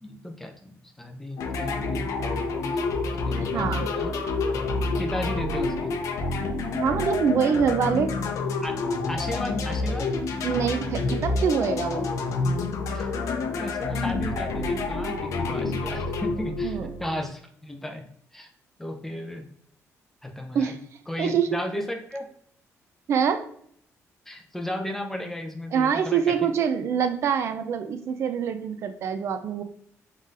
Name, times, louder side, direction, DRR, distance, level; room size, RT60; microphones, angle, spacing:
voice 1, 0.0-4.1 5.0-5.9 8.6-8.8 9.1-10.1 12.9-18.0 18.3-18.5 18.8-19.4 20.2-20.7 21.1-22.3 24.3-26.5, left 1 dB, 5° left, 3 dB, 0.5 m, -35 dB
sound 1, 1.4-17.3, left 3 dB, 70° left, 0.6 m, -28 dB
voice 2, 3.4-3.9 6.7-8.1 10.4-12.1 16.6-16.9 20.5-20.8 21.2-21.5 23.1-23.4 25.7-29.6, right 7 dB, 55° right, 8 dB, 0.4 m, -25 dB
3.9 x 3.9 x 2.5 m, 0.64 s
cardioid pair, 160°, 6 cm